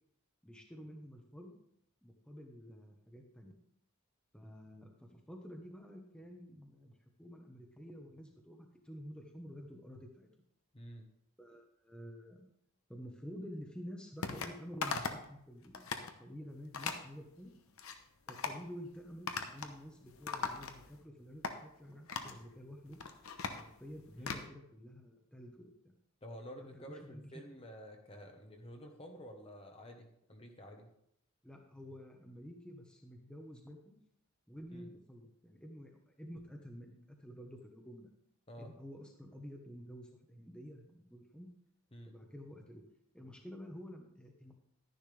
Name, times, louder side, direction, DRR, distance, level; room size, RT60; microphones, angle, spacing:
voice 1, 0.4-1.6 2.0-3.6 4.3-10.3 11.4-12.4 12.9-15.8 16.2-17.5 18.3-23.0 23.6-25.9 26.7-27.2 31.4-34.0 34.5-38.1 38.6-41.5 42.1-42.8 43.1-44.5, equal, 5° left, 1 dB, 1.1 m, -50 dB
voice 2, 10.7-11.1 24.2-24.4 26.2-30.9 34.7-34.9 38.5-38.7 41.9-42.1, equal, 25° left, 3 dB, 1.1 m, -50 dB
sound 1, 14.2-14.5 14.8-15.3 15.6-16.1 16.7-17.0 17.6-18.0 18.3-18.6 19.3-19.8 20.0-21.0 21.4-21.6 22.1-22.4 22.9-24.5, left 5 dB, 70° left, 0.9 m, -39 dB
12.0 x 10.5 x 3.4 m, 0.73 s
head